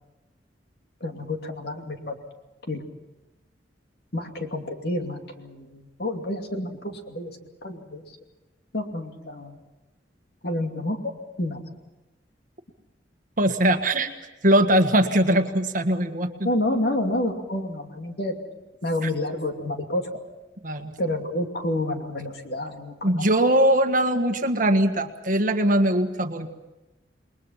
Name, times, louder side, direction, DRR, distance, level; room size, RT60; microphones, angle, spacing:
voice 1, 1.0-2.2 2.7-2.8 4.1-8.0 8.7-9.6 10.4-11.0 11.4-11.7 16.4-18.3 18.8-20.0 21.0-23.3, left 1 dB, 55° left, 4 dB, 2.6 m, -29 dB
voice 2, 13.4-14.1 14.4-16.5 19.0-19.1 20.6-20.9 23.0-26.5, right 1 dB, 45° right, 6 dB, 1.6 m, -21 dB
28.5 x 21.5 x 5.8 m, 1.1 s
head